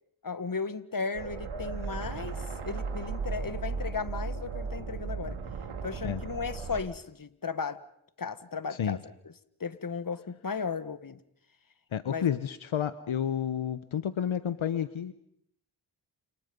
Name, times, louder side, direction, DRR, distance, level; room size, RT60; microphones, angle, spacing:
voice 1, 0.2-5.4 5.8-7.8 8.2-9.1 9.6-11.2 12.1-12.4, left 5 dB, 40° left, 1.8 m, -35 dB
sound 1, 1.1-6.8, right 5 dB, 85° right, 3.3 m, -36 dB
voice 2, 11.9-15.1, left 9 dB, 70° left, 1.2 m, -30 dB
29.5 x 27.0 x 5.4 m
cardioid pair, 40°, 49 cm